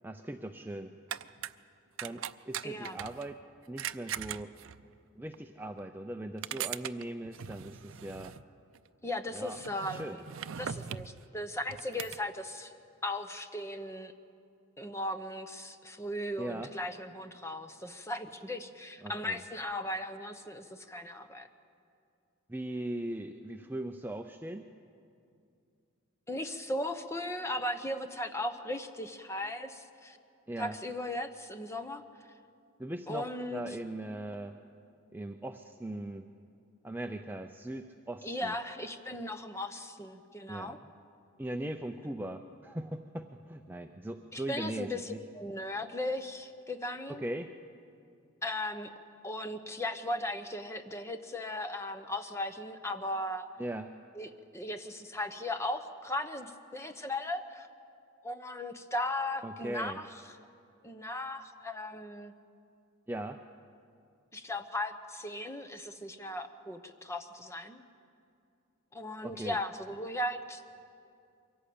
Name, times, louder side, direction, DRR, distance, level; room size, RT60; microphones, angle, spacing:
voice 1, 0.0-0.9 2.0-3.4 3.7-4.5 5.2-8.3 9.3-9.6 9.9-10.2 16.4-16.7 19.0-19.4 22.5-24.7 30.5-30.8 32.8-34.5 35.1-36.3 36.8-38.5 40.5-40.8 41.4-45.2 47.1-47.5 53.6-54.0 59.4-60.0 63.1-63.4 69.2-69.6, right 1 dB, 10° right, 5 dB, 0.5 m, -39 dB
sound 1, 1.1-1.5 2.0-3.3 3.8-4.9 5.3-5.4 5.8-5.9 6.4-8.4 8.7-8.9 9.4-11.2 11.7-12.2, right 9 dB, 65° right, 0.5 m, -40 dB
voice 2, 2.6-3.0 9.0-10.2 10.6-12.7 13.0-14.1 14.8-21.5 26.3-30.2 30.6-32.0 33.1-33.6 38.2-40.8 44.3-47.2 48.4-48.9 49.2-53.5 54.2-57.7 58.2-60.1 60.8-62.3 64.3-67.8 68.9-70.7, left 1 dB, 15° left, 8 dB, 0.9 m, -37 dB
23.5 x 16.5 x 8.6 m, 2.5 s
head